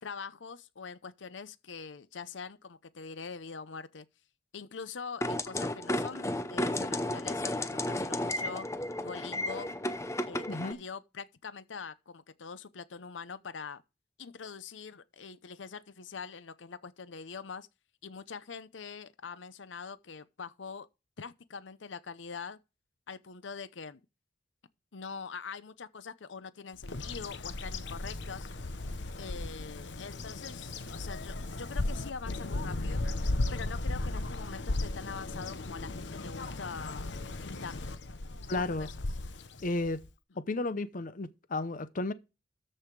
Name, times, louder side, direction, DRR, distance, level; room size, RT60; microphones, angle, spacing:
voice 1, 0.0-4.1 4.5-8.7 9.0-9.8 10.2-13.8 14.2-17.7 18.0-20.9 21.2-22.6 23.1-24.0 24.9-28.5 29.2-33.1 33.5-37.1 37.4-37.8 38.4-38.9, left 5 dB, 90° left, 0.7 m, -44 dB
sound 1, 5.2-10.7, left 1 dB, 15° left, 0.7 m, -33 dB
voice 2, 10.5-10.8 38.5-38.9 39.6-40.0 40.3-42.1, left 2 dB, 45° left, 0.7 m, -33 dB
Bird vocalization bird call bird song, 26.8-40.1, left 2 dB, 75° left, 1.1 m, -36 dB
13.5 x 5.6 x 4.7 m
head